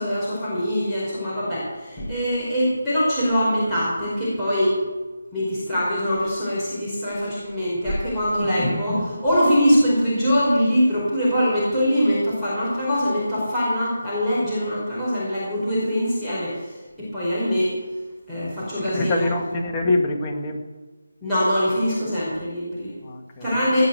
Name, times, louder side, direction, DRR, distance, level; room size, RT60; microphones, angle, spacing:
voice 1, 0.0-4.7 5.3-17.8 18.3-19.3 21.2-22.9 23.4-23.9, equal, ahead, -15 dB, 4.8 m, -23 dB
voice 2, 18.8-20.6 23.0-23.5, left 2 dB, 20° left, 1 dB, 1.7 m, -25 dB
17.5 x 6.1 x 8.2 m, 1.3 s
figure-of-eight pair, 165°, 0 cm